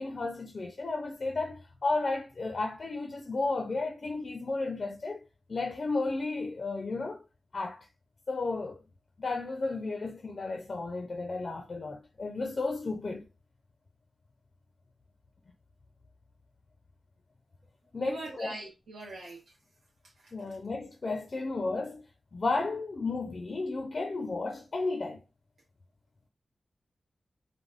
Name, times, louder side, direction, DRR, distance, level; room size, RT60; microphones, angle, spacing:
voice 1, 0.0-7.3 7.5-7.9 8.3-8.8 9.2-13.3 17.9-18.5 20.3-22.0 22.3-25.2, left 3 dB, 45° left, 0.4 m, -33 dB
voice 2, 18.0-19.4 20.2-20.6, right 2 dB, 75° right, 0.7 m, -42 dB
3.3 x 2.1 x 2.4 m
wide cardioid pair, 130°, 0 cm